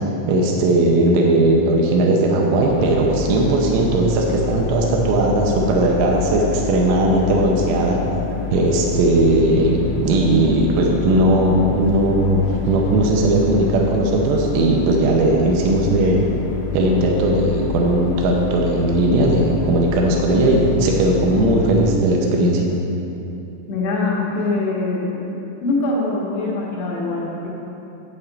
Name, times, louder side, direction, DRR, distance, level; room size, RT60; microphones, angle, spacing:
voice 1, 0.3-8.0 8.5-9.8 10.0-16.2 16.7-22.6, right 2 dB, 85° right, -1 dB, 3.3 m, -17 dB
sound 1, 2.7-21.9, left 8 dB, 85° left, 3.1 m, -29 dB
voice 2, 23.7-25.2 25.6-27.6, left 2 dB, 70° left, -5 dB, 3.1 m, -23 dB
8.8 x 8.5 x 4.1 m, 2.9 s
omnidirectional pair, 5.5 m